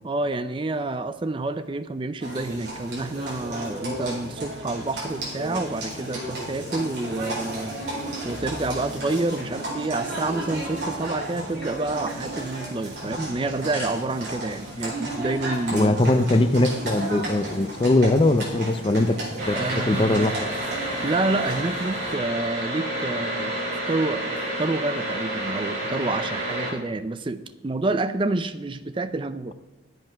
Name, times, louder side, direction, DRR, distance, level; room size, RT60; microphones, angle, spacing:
voice 1, 0.0-7.7 8.2-16.0 19.5-20.3 21.0-23.5 23.9-29.5, right 2 dB, 25° right, 12 dB, 0.4 m, -28 dB
Livestock farm animals working animals, 2.2-22.1, right 1 dB, 55° right, 4.3 m, -34 dB
sound 1, 9.1-10.1 10.4-10.5 10.8-11.3 11.6-11.7 12.0-12.2 13.2-13.9, left 1 dB, 10° left, 4.6 m, -42 dB
voice 2, 15.7-19.2 19.5-19.6 19.8-20.4, left 2 dB, 25° left, 10 dB, 0.5 m, -20 dB
sound 2, 19.4-26.7, right 1 dB, 40° right, 4.8 m, -29 dB
11.0 x 7.9 x 5.9 m, 0.99 s
head